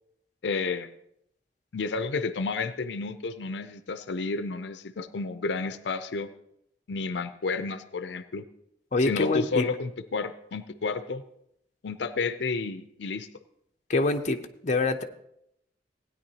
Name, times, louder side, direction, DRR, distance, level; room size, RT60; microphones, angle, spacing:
voice 1, 0.4-0.9 1.7-6.3 6.9-8.4 9.0-11.2 11.8-13.3, left 4 dB, 80° left, 11 dB, 0.5 m, -31 dB
voice 2, 8.9-9.7 13.9-15.0, left 2 dB, 40° left, 5 dB, 0.6 m, -25 dB
16.5 x 9.5 x 2.8 m, 0.77 s
head